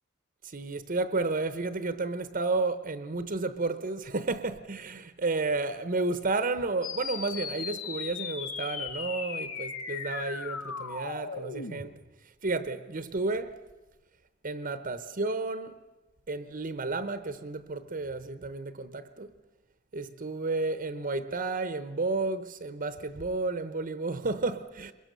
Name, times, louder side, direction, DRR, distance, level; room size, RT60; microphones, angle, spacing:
voice 1, 0.4-12.0 12.4-13.6 14.4-15.8 16.3-19.3 19.9-24.9, right 3 dB, 40° right, 0.9 m, -32 dB
sound 1, 6.8-11.8, left 6 dB, 80° left, 2.5 m, -37 dB
23.0 x 21.5 x 6.7 m
head